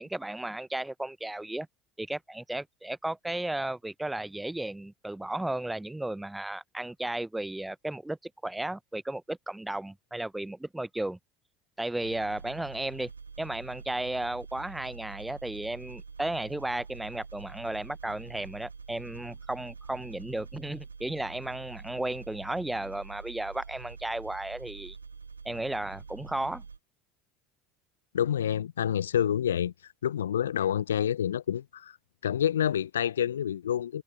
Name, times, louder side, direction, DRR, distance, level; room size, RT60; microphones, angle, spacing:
voice 1, 0.0-1.7 2.0-8.2 8.4-11.2 11.8-13.1 13.4-25.0 25.4-26.6, right 1 dB, 5° right, 0.8 m, -34 dB
sound 1, 12.0-26.8, right 5 dB, 85° right, 2.8 m, -46 dB
voice 2, 28.1-29.7 30.0-32.0 32.2-34.0, left 9 dB, 75° left, 0.7 m, -28 dB
figure-of-eight pair, 65°, 0 cm